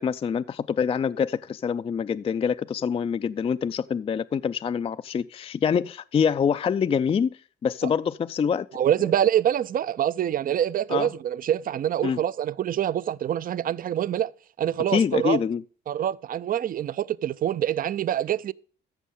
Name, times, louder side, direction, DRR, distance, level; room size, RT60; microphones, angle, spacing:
voice 1, 0.0-8.7 10.9-11.1 12.0-12.2 14.9-15.6, left 7 dB, 30° left, 0.3 m, -25 dB
voice 2, 8.7-14.3 14.6-15.4 15.9-18.5, right 10 dB, 45° right, 0.4 m, -25 dB
14.0 x 6.3 x 3.7 m
cardioid pair, 90°, 20 cm